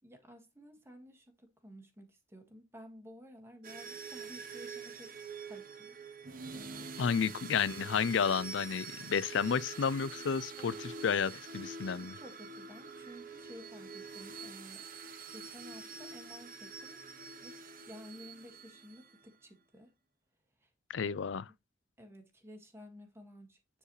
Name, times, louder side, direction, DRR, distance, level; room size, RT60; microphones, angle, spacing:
voice 1, 0.0-5.1 5.5-7.2 12.0-14.9 15.3-17.0 17.4-19.9 20.6-20.7 21.0-21.2 22.0-23.6, equal, 15° right, 1.8 m, -53 dB
sound 1, 3.6-19.3, right 4 dB, 45° right, 0.9 m, -46 dB
voice 2, 7.0-12.1 20.9-21.5, left 6 dB, 65° left, 0.4 m, -31 dB
9.8 x 4.7 x 3.1 m
head